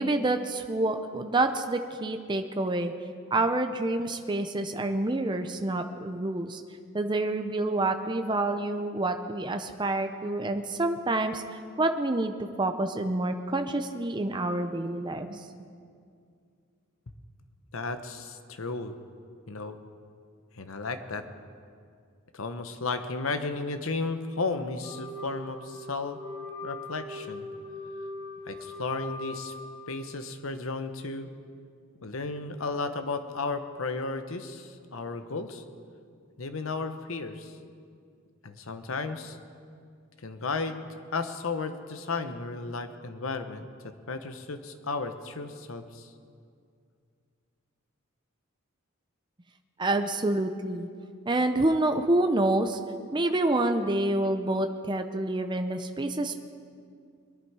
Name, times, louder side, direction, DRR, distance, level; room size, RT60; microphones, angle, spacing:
voice 1, 0.0-2.9 3.3-6.6 6.9-11.4 11.8-15.6 49.8-50.9 51.3-52.8 53.1-56.3, right 2 dB, 20° right, 7 dB, 0.6 m, -27 dB
voice 2, 17.7-18.9 19.5-19.8 20.6-21.2 22.3-26.2 26.6-27.5 28.5-29.5 29.9-31.3 32.0-35.6 36.4-37.5 38.4-39.4 40.2-40.8 41.1-46.1, left 3 dB, 70° left, 9 dB, 0.9 m, -34 dB
Wind instrument woodwind instrument, 24.8-30.4, left 2 dB, 55° left, 4.4 m, -41 dB
22.0 x 11.0 x 4.8 m, 2.3 s
head